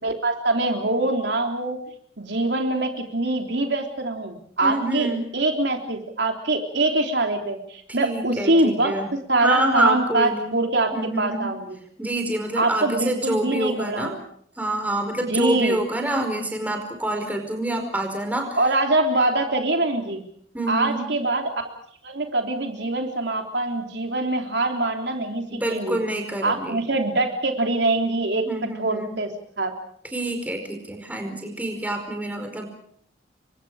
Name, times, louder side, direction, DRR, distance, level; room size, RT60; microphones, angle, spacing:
voice 1, 0.0-1.8 2.2-5.1 5.3-8.9 9.3-10.9 11.2-11.8 12.6-14.2 15.2-15.8 18.6-20.2 20.7-21.7 22.0-26.0 26.4-28.4 28.8-29.3 29.6-29.7, right 2 dB, 70° right, 3 dB, 3.5 m, -24 dB
voice 2, 4.6-5.3 8.0-9.1 9.4-10.5 10.9-11.5 12.0-14.1 14.6-18.6 20.5-21.1 25.5-26.9 28.5-29.2 30.1-32.7, right 1 dB, 10° right, 4 dB, 4.9 m, -27 dB
29.0 x 24.5 x 5.0 m, 0.63 s
head